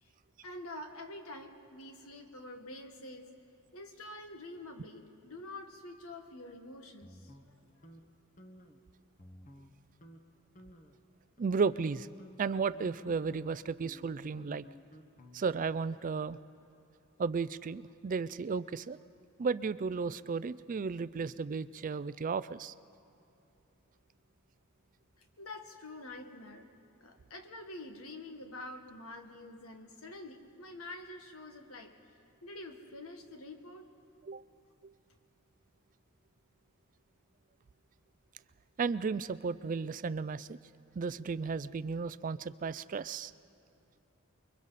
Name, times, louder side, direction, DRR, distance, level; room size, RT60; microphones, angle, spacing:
voice 1, 0.4-3.3 3.7-7.6 25.2-26.7 27.0-31.9 32.4-33.9, left 2 dB, 75° left, 5 dB, 1.8 m, -47 dB
sound 1, 7.0-8.0 8.4-8.8 9.2-9.7 10.0-10.2 10.5-11.0 11.4-15.7, equal, 35° left, 1.4 m, -55 dB
voice 2, 11.4-12.1 12.4-14.6 15.3-16.4 17.2-19.0 19.4-22.7 34.2-34.4 34.8-34.9 38.8-40.6 41.0-43.3, right 5 dB, 40° right, 16 dB, 0.4 m, -34 dB
29.0 x 22.5 x 4.2 m, 2.8 s
head